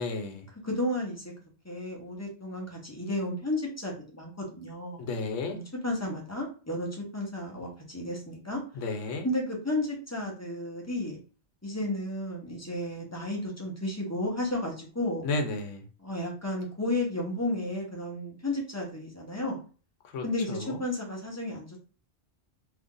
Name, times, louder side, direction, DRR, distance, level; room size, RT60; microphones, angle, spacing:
voice 1, 0.0-0.5 5.0-5.6 8.7-9.3 15.2-15.9 20.0-20.8, left 3 dB, 80° left, 1.0 m, -33 dB
voice 2, 0.6-1.3 1.6-5.0 5.5-8.6 9.2-11.2 11.6-15.3 16.0-19.6 20.2-21.8, left 1 dB, 15° left, 0.8 m, -33 dB
2.8 x 2.5 x 3.7 m
omnidirectional pair, 1.3 m